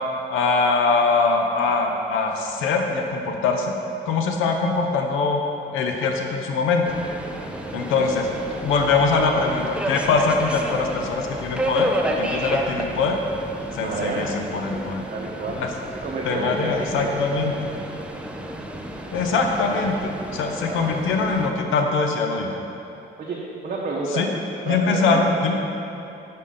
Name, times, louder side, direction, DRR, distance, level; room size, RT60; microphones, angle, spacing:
voice 1, 0.3-3.7 4.1-5.4 5.7-6.9 7.7-8.3 8.5-11.9 12.2-13.2 13.7-15.0 15.5-15.7 16.2-17.7 19.1-22.5 24.1-24.3 24.7-25.5, left 4 dB, 90° left, 3 dB, 0.6 m, -22 dB
Subway metro underground, 6.9-21.5, right 1 dB, 5° right, 0.4 m, -31 dB
voice 2, 7.7-8.1 13.7-14.3 14.7-15.6 16.0-17.1 20.6-20.9 23.2-24.3 24.7-25.2, right 3 dB, 45° right, -4 dB, 0.7 m, -30 dB
5.5 x 4.2 x 4.9 m, 2.9 s
cardioid pair, 90°, 20 cm